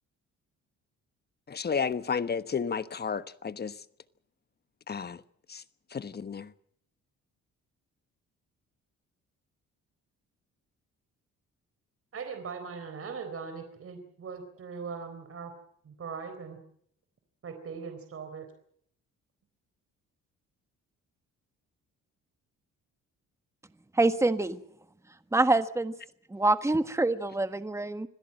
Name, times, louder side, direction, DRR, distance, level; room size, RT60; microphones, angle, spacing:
voice 1, 1.5-3.7 4.9-5.2 5.5-5.6 5.9-6.5, left 6 dB, 35° left, 1.2 m, -32 dB
voice 2, 12.1-15.5 15.8-16.6 17.4-18.5, right 5 dB, 50° right, 3.9 m, -40 dB
voice 3, 23.9-24.6 25.3-25.9 26.3-28.1, right 2 dB, 10° right, 1.5 m, -25 dB
26.0 x 17.0 x 7.7 m
cardioid pair, 90°, 30 cm